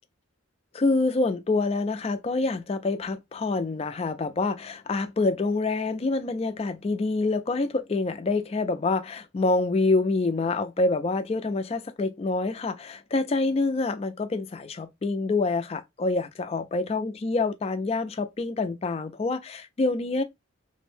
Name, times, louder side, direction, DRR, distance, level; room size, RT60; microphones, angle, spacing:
voice 1, 0.7-20.2, left 3 dB, 30° left, 0.3 m, -26 dB
2.6 x 2.0 x 3.2 m
head